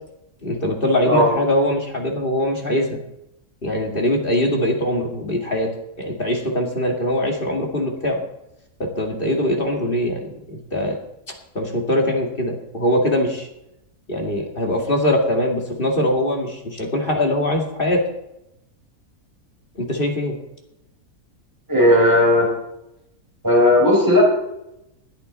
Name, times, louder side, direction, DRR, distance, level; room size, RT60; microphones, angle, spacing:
voice 1, 0.4-3.0 3.6-5.7 6.0-8.2 8.8-11.0 11.5-13.5 14.1-18.0 19.8-20.4, left 1 dB, 35° left, 1 dB, 2.4 m, -22 dB
voice 2, 21.7-22.5 23.4-24.2, left 1 dB, 10° right, -3 dB, 5.9 m, -15 dB
21.5 x 8.7 x 4.1 m, 0.84 s
omnidirectional pair, 1.6 m